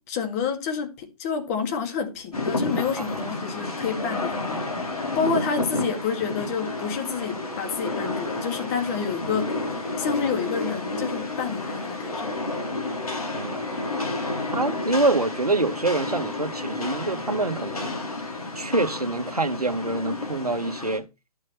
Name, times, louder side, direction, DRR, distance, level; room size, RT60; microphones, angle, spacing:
voice 1, 0.1-4.6 5.2-9.6 10.0-12.4, left 6 dB, 25° left, 2.1 m, -29 dB
Rain, 2.3-21.0, left 2 dB, 70° left, 4.5 m, -31 dB
voice 2, 14.5-17.9 18.5-21.1, right 2 dB, 80° right, 1.5 m, -25 dB
12.0 x 6.4 x 4.5 m
figure-of-eight pair, 130°, 19 cm